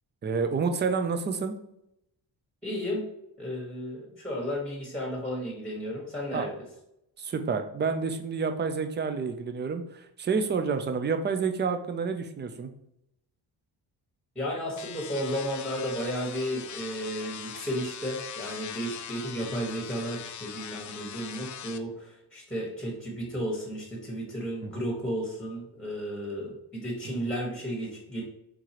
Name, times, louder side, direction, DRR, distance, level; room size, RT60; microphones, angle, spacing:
voice 1, 0.2-1.6 6.3-6.4 7.2-12.7 24.6-24.8 27.0-27.3, right 5 dB, 25° right, 7 dB, 0.4 m, -29 dB
voice 2, 2.6-3.0 3.4-6.5 14.3-28.2, equal, ahead, -1 dB, 1.3 m, -33 dB
sound 1, 14.8-21.8, left 9 dB, 45° left, 0.4 m, -41 dB
4.6 x 3.8 x 2.9 m, 0.80 s
cardioid pair, 110°, 46 cm